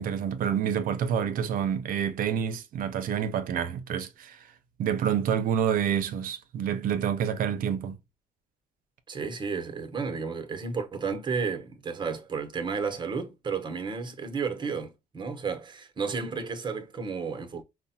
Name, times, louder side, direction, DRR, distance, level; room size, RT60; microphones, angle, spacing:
voice 1, 0.0-4.5 4.8-8.0, right 8 dB, 60° right, 0.6 m, -28 dB
voice 2, 9.1-17.6, right 5 dB, 30° right, 0.8 m, -32 dB
4.9 x 2.1 x 2.7 m
cardioid pair, 115°, 16 cm